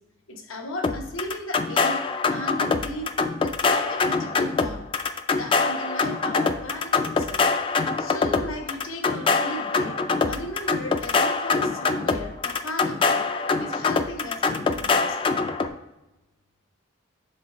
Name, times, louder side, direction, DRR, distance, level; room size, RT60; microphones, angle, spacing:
voice 1, 0.3-2.0 2.3-3.1 3.4-4.9 5.3-7.4 8.0-10.0 10.3-13.3 13.6-15.4, left 1 dB, 80° left, 3 dB, 1.0 m, -36 dB
sound 1, 0.8-15.7, left 4 dB, 25° left, 0.3 m, -24 dB
7.7 x 3.2 x 4.4 m, 1.0 s
head